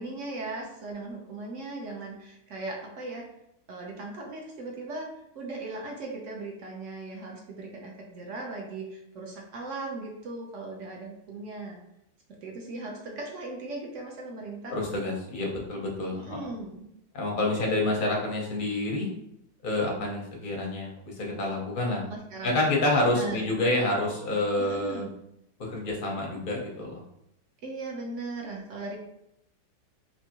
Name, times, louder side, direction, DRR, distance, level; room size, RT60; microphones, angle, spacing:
voice 1, 0.0-3.2 3.7-5.1 5.3-11.8 12.4-14.8 16.1-16.8 21.9-22.5 23.1-23.5 24.6-25.2 27.6-29.0, right 2 dB, 60° right, 0 dB, 0.8 m, -38 dB
voice 2, 14.7-16.4 17.1-19.1 19.6-22.0 22.4-25.0 25.6-27.0, left 2 dB, 50° left, -1 dB, 0.6 m, -28 dB
4.4 x 2.7 x 2.8 m, 0.80 s
omnidirectional pair, 1.9 m